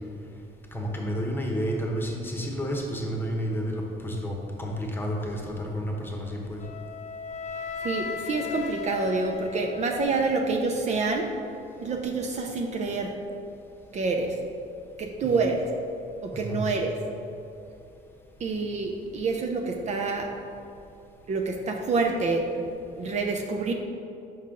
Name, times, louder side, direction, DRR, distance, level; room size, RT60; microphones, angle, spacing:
voice 1, 0.7-6.6 15.2-15.3 16.3-16.7, equal, 10° left, -1 dB, 1.1 m, -31 dB
Wind instrument woodwind instrument, 6.6-10.6, left 6 dB, 45° left, 0.4 m, -36 dB
voice 2, 7.8-11.3 11.8-13.2 13.9-14.4 15.0-15.7 16.2-16.9 18.4-20.3 21.3-23.7, right 3 dB, 45° right, 2 dB, 0.5 m, -27 dB
5.6 x 5.5 x 3.7 m, 2.7 s
cardioid pair, 110°, 17 cm